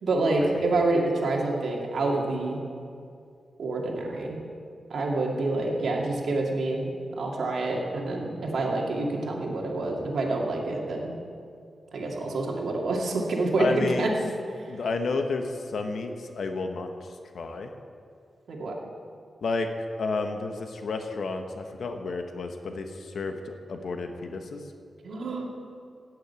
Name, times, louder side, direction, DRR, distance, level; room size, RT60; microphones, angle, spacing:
voice 1, 0.0-2.6 3.6-4.4 4.9-11.2 11.9-14.1 14.6-14.7 18.5-18.7 25.0-25.5, right 2 dB, 70° right, -1 dB, 2.3 m, -27 dB
voice 2, 13.6-14.1 14.7-16.9 17.3-17.7 19.4-19.7 20.0-24.6, left 3 dB, 65° left, 5 dB, 1.2 m, -31 dB
15.0 x 6.5 x 8.8 m, 2.3 s
wide cardioid pair, 155°, 0 cm